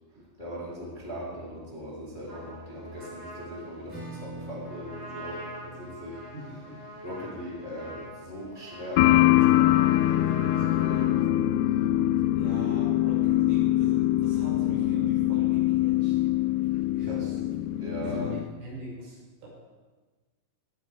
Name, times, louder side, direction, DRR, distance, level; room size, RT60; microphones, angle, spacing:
voice 1, 0.4-6.2 7.0-10.3 10.7-11.2 17.0-17.3 17.8-18.3, equal, 10° left, -7 dB, 2.9 m, -39 dB
Trumpet, 2.2-11.1, equal, 25° right, 4.5 m, -44 dB
Acoustic guitar / Strum, 3.9-9.3, right 2 dB, 5° right, 4.4 m, -46 dB
voice 2, 6.3-6.8 12.3-16.1 17.0-17.3 18.0-19.5, right 1 dB, 70° right, -6 dB, 8.2 m, -42 dB
sound 1, 9.0-18.5, left 14 dB, 85° left, 2.3 m, -23 dB
19.0 x 14.5 x 3.6 m, 1.3 s
omnidirectional pair, 5.1 m